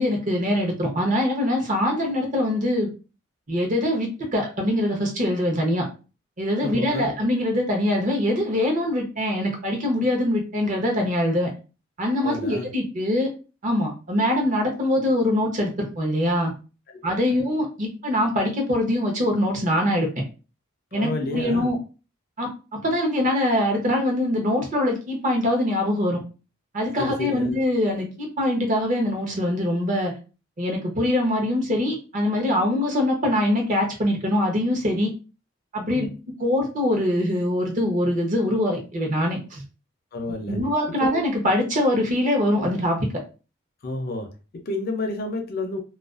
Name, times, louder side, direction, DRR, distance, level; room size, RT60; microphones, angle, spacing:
voice 1, 0.0-2.9 3.5-5.9 6.4-11.5 12.0-13.3 13.6-16.5 17.0-20.1 20.9-21.8 22.4-26.2 26.7-30.1 30.6-35.1 35.7-36.1 36.4-39.6 40.5-43.1, left 1 dB, 40° right, 0.7 m, -23 dB
voice 2, 6.6-7.1 12.2-12.7 20.9-21.7 26.9-27.6 35.9-36.1 40.1-40.6 40.9-41.0 43.8-45.8, left 2 dB, 45° left, 0.4 m, -30 dB
2.3 x 2.2 x 2.4 m
head